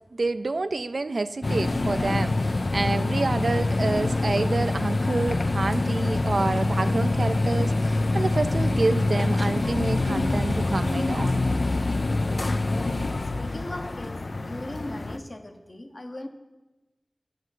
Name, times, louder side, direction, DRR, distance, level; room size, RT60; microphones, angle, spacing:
voice 1, 0.1-11.4, right 3 dB, 75° right, 11 dB, 0.4 m, -28 dB
sound 1, 1.4-15.2, left 2 dB, 65° left, 0.5 m, -25 dB
voice 2, 13.1-16.3, left 1 dB, 50° left, 5 dB, 1.1 m, -39 dB
8.0 x 6.5 x 7.6 m, 1.1 s
wide cardioid pair, 45°, 0 cm